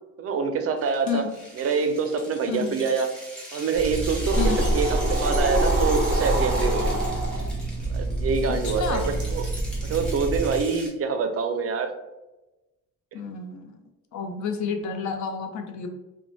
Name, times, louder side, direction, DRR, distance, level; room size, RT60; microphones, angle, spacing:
voice 1, 0.2-1.2 1.5-3.1 3.5-4.4 4.7-7.0 7.9-9.4 9.8-11.9, right 5 dB, 50° right, 7 dB, 0.4 m, -26 dB
sound 1, 0.8-10.9, equal, 5° left, 1.0 m, -40 dB
sound 2, 3.7-10.6, right 1 dB, 35° right, 0.9 m, -25 dB
voice 2, 4.4-4.7 8.5-9.1 13.1-13.8 14.1-15.9, left 6 dB, 70° left, 5 dB, 0.5 m, -30 dB
2.5 x 2.1 x 3.0 m, 1.0 s
cardioid pair, 90°, 30 cm